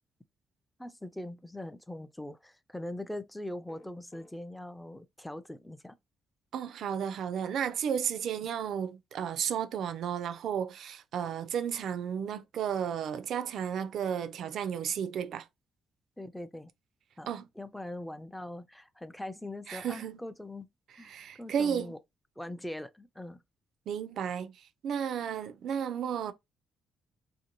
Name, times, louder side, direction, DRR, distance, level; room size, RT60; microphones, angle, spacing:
voice 1, 0.8-6.0 16.2-16.7 17.2-17.3 17.6-20.7 20.9-22.0 22.4-23.4, left 1 dB, 5° left, 0.4 m, -41 dB
sound 1, 3.7-4.3, left 1 dB, 35° left, 0.8 m, -55 dB
voice 2, 6.5-15.5 17.3-17.5 19.7-20.2 21.1-21.9 23.9-26.3, right 8 dB, 70° right, 0.3 m, -33 dB
2.6 x 2.5 x 2.8 m
cardioid pair, 90°, 0 cm